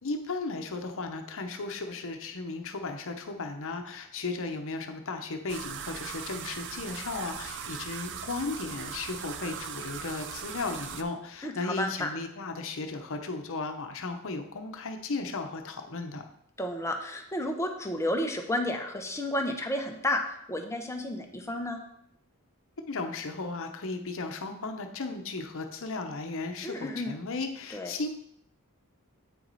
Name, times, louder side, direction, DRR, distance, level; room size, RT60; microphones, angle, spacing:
voice 1, 0.0-16.2 22.9-28.1, left 3 dB, 65° left, 6 dB, 0.8 m, -35 dB
sound 1, 5.5-11.0, right 8 dB, 55° right, 0.5 m, -39 dB
voice 2, 11.4-12.1 16.6-20.2 20.5-21.8 26.6-27.1 27.7-27.9, left 1 dB, 15° left, 3 dB, 0.8 m, -31 dB
8.2 x 4.7 x 4.0 m, 0.71 s
head